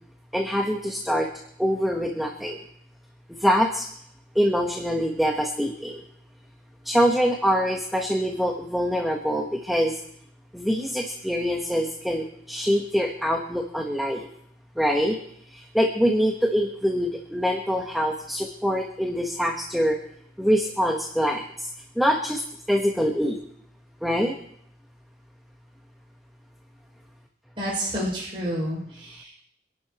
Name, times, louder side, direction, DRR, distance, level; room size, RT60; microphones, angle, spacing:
voice 1, 0.3-1.3 1.6-2.6 3.3-3.9 4.3-6.0 6.8-10.0 10.5-14.3 14.8-15.2 15.5-20.0 20.4-21.7 21.9-22.4 22.7-23.4 24.0-24.3, equal, ahead, 1 dB, 1.2 m, -24 dB
voice 2, 27.6-29.5, equal, 30° right, -6 dB, 6.1 m, -30 dB
26.0 x 11.5 x 3.0 m, 0.68 s
head